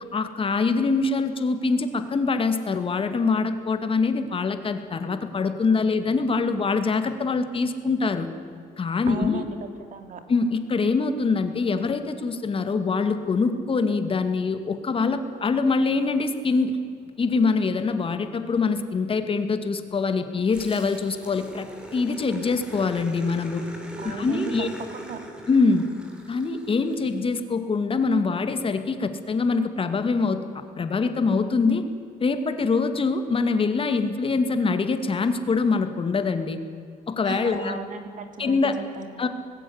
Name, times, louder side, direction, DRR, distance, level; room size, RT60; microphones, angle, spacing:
voice 1, 0.1-8.3 8.8-9.5 10.3-16.8 17.2-23.6 24.0-24.7 25.5-25.9 26.3-30.4 30.8-31.8 32.2-36.6 37.1-37.8 38.4-38.8 39.2-39.3, left 4 dB, 30° left, 9 dB, 2.1 m, -24 dB
voice 2, 9.1-9.5 9.9-10.2 24.0-24.5 24.9-25.2 37.2-39.3, right 4 dB, 50° right, 7 dB, 2.9 m, -35 dB
Growling, 20.5-27.2, equal, 5° right, 3.8 m, -41 dB
20.0 x 16.0 x 9.9 m, 2.3 s
cardioid pair, 110°, 17 cm